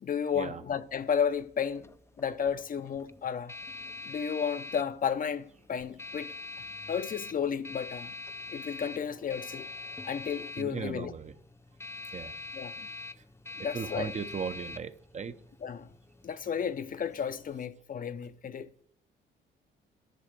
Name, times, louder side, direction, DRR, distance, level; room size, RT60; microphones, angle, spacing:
voice 1, 0.0-1.9 2.2-3.5 4.1-6.3 6.9-8.1 8.5-9.7 10.0-11.1 12.5-12.9 13.6-14.1 15.6-15.9 16.2-18.8, left 7 dB, 45° left, 0.7 m, -33 dB
sound 1, 0.8-17.6, left 3 dB, 15° left, 0.5 m, -44 dB
voice 2, 10.6-11.3 12.1-12.3 13.7-15.3, right 6 dB, 35° right, 0.8 m, -37 dB
10.5 x 5.0 x 8.2 m
cardioid pair, 90°, 20 cm